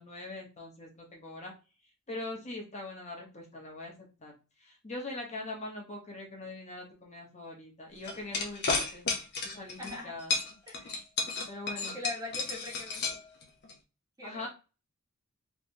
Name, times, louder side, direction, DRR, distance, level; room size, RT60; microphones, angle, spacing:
voice 1, 0.0-1.5 2.1-9.1 9.4-10.4 11.5-12.0 14.2-14.5, left 2 dB, 35° left, 0 dB, 1.1 m, -42 dB
sound 1, 8.0-10.0 10.3-13.7, left 4 dB, 50° left, 0.8 m, -32 dB
voice 2, 9.8-10.2 10.7-10.9 11.8-13.0 14.2-14.5, left 2 dB, 15° right, 0 dB, 0.9 m, -41 dB
3.3 x 3.2 x 2.7 m, 0.31 s
head